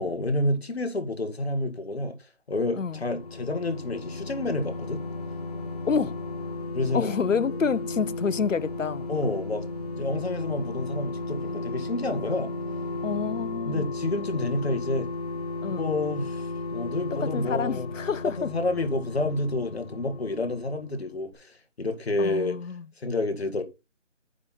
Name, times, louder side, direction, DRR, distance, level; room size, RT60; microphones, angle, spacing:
voice 1, 0.0-2.2 2.5-5.0 6.7-7.1 9.1-9.6 9.9-12.5 13.7-15.1 15.7-17.9 18.2-22.6 23.0-23.6, left 2 dB, 55° left, 1.8 m, -29 dB
sound 1, 2.8-21.0 21.3-21.4, left 3 dB, 30° left, 1.0 m, -35 dB
voice 2, 5.9-6.2 6.9-9.1 13.0-13.9 15.6-15.9 17.1-18.5 22.2-22.8, left 6 dB, 80° left, 0.7 m, -28 dB
9.5 x 3.9 x 5.8 m
figure-of-eight pair, 165°, 38 cm